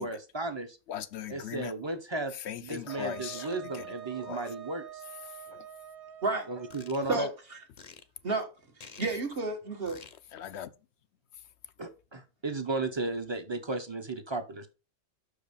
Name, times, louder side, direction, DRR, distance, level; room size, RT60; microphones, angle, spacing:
voice 1, 0.0-0.8 1.3-2.3 2.6-5.0 6.5-7.3 11.8-14.7, right 2 dB, 25° right, 0.9 m, -34 dB
voice 2, 0.9-1.7 2.3-3.9 4.3-4.5 5.2-5.7 7.1-7.3 10.3-10.7 11.3-11.4, left 11 dB, 75° left, 0.9 m, -40 dB
sound 1, 2.2-2.3 3.3-3.8 4.0-5.1 5.5-5.6 6.7-7.0 7.8-8.0 8.8-9.1 9.9-10.2, left 5 dB, 40° left, 0.7 m, -49 dB
Wind instrument woodwind instrument, 2.9-7.3, right 11 dB, 75° right, 0.9 m, -46 dB
voice 3, 7.1-7.6 8.2-8.5 9.0-10.0, right 3 dB, 55° right, 1.6 m, -31 dB
6.2 x 4.8 x 5.1 m
omnidirectional pair, 1.2 m